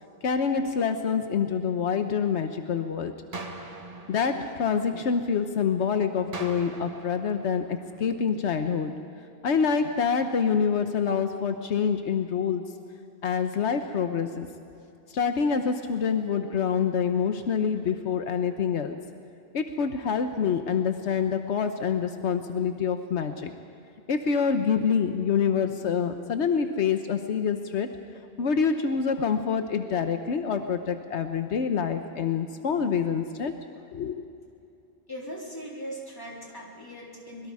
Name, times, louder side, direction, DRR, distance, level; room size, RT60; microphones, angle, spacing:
voice 1, 0.2-3.1 4.1-8.9 9.4-12.7 13.2-14.5 15.1-19.0 19.5-23.5 24.1-27.9 28.4-33.5 33.9-34.2, left 6 dB, 80° left, 7 dB, 1.2 m, -26 dB
sound 1, 3.3-5.4 6.3-8.4, right 2 dB, 35° right, 1.4 m, -42 dB
voice 2, 35.1-37.5, equal, 20° left, -3 dB, 3.7 m, -39 dB
24.5 x 22.0 x 4.8 m, 2.6 s
omnidirectional pair, 1.1 m